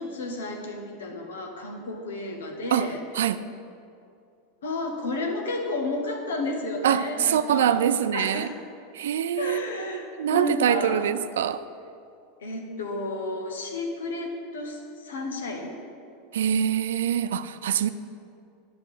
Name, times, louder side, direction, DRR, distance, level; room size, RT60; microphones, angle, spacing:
voice 1, 0.0-3.0 4.6-7.9 8.1-8.5 9.3-11.1 12.4-15.8, left 2 dB, 85° left, 1.2 m, -32 dB
voice 2, 6.8-8.5 8.9-11.7 16.3-17.9, right 9 dB, 80° right, 0.3 m, -24 dB
10.0 x 5.7 x 4.9 m
hypercardioid pair, 95°, 0 cm